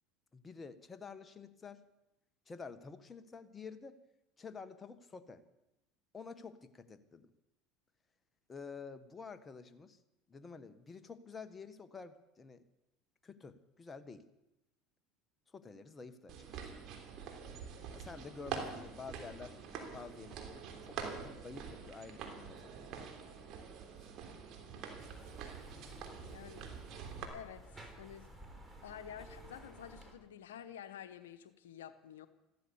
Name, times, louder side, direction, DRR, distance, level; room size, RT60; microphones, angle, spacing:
voice 1, 0.3-1.8 2.5-4.0 4.4-5.4 6.1-7.3 8.5-10.0 10.3-12.6 13.2-14.2 15.5-16.7 17.9-19.5 19.9-22.9, left 5 dB, 25° left, 10 dB, 1.3 m, -50 dB
sound 1, 16.3-27.2, right 6 dB, 55° right, 3.3 m, -46 dB
sound 2, 25.0-30.1, right 2 dB, 15° right, 3.9 m, -53 dB
voice 2, 26.3-26.7 27.3-28.3 28.8-32.3, left 9 dB, 85° left, 10 dB, 0.9 m, -50 dB
14.5 x 13.5 x 7.1 m, 0.92 s
hypercardioid pair, 80°, 0 cm